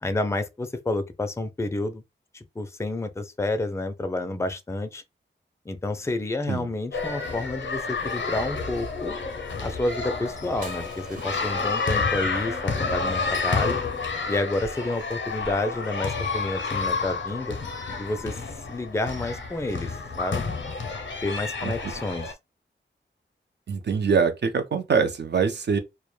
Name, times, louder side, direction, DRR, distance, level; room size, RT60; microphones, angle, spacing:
voice 1, 0.0-2.0 2.3-5.0 5.7-9.2 9.6-13.8 14.3-17.6 18.0-18.4 18.7-20.4 21.2-22.3, left 2 dB, 15° left, 0.4 m, -29 dB
sound 1, 6.9-22.3, left 4 dB, 75° left, 0.6 m, -30 dB
sound 2, 10.6-11.9 12.9-13.8 14.7-16.4, right 2 dB, 45° right, 0.8 m, -48 dB
voice 2, 23.7-25.8, right 6 dB, 60° right, 0.5 m, -24 dB
2.1 x 2.1 x 3.0 m
wide cardioid pair, 80°, 20 cm